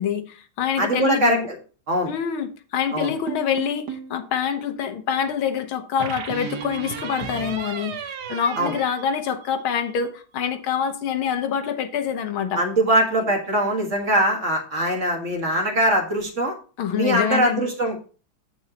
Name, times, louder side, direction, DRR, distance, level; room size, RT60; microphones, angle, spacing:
voice 1, 0.0-1.5 2.1-12.6 16.8-17.7, left 8 dB, 80° left, 1.9 m, -26 dB
voice 2, 0.8-1.6 1.9-2.1 2.9-3.1 8.6-8.7 12.6-16.6 16.9-18.0, right 1 dB, 40° right, 1.8 m, -22 dB
sound 1, 3.3-4.2 6.0-9.8, right 7 dB, 55° right, 1.5 m, -34 dB
15.0 x 5.4 x 2.9 m
omnidirectional pair, 2.3 m